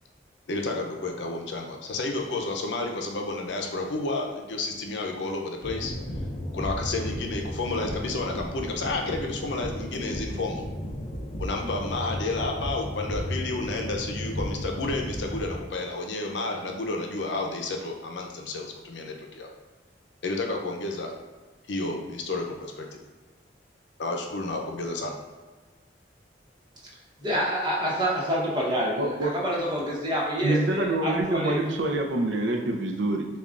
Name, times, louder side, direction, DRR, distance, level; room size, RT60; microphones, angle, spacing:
voice 1, 0.5-5.9 6.5-10.7 11.4-19.5 20.2-21.1 21.7-23.0 24.0-25.1, left 2 dB, 80° left, 1 dB, 0.6 m, -31 dB
sound 1, 5.6-15.6, equal, 40° left, 0.6 m, -34 dB
voice 2, 27.2-31.6, equal, 25° right, -5 dB, 1.0 m, -27 dB
voice 3, 29.0-29.3 30.4-33.3, right 2 dB, 80° right, 3 dB, 0.5 m, -26 dB
6.8 x 2.4 x 2.5 m, 1.4 s
head